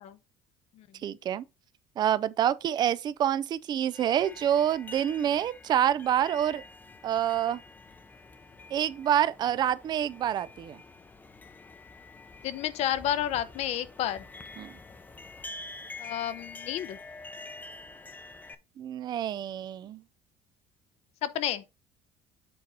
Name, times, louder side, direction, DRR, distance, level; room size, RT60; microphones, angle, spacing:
voice 1, 1.0-1.4 2.0-6.6 7.0-7.6 8.7-10.8 14.6-14.7 18.8-20.0, right 10 dB, 35° right, 0.4 m, -27 dB
sound 1, 3.9-18.5, left 3 dB, 15° left, 0.7 m, -47 dB
voice 2, 12.4-14.2 16.0-17.0 21.2-21.6, left 11 dB, 55° left, 0.7 m, -31 dB
7.7 x 4.0 x 4.1 m
cardioid pair, 155°, 13 cm